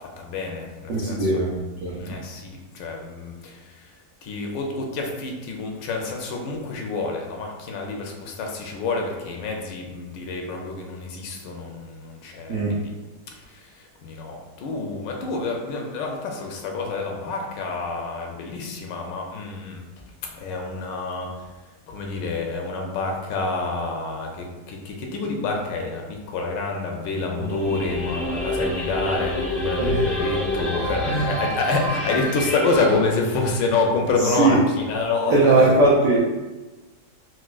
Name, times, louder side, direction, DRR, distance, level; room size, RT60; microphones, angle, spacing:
voice 1, 0.0-1.3 2.0-3.9 4.2-12.9 13.5-19.8 20.2-21.5 21.9-34.6 34.9-35.8, left 3 dB, 85° left, 1 dB, 1.3 m, -28 dB
voice 2, 0.9-1.5 1.8-2.0 12.5-12.8 27.4-27.5 29.8-30.1 31.0-31.3 34.2-34.6 35.2-36.2, right 2 dB, 85° right, -5 dB, 0.6 m, -19 dB
sound 1, 27.5-33.0, left 1 dB, ahead, 0.3 m, -28 dB
4.4 x 2.2 x 2.3 m, 1.2 s
omnidirectional pair, 1.9 m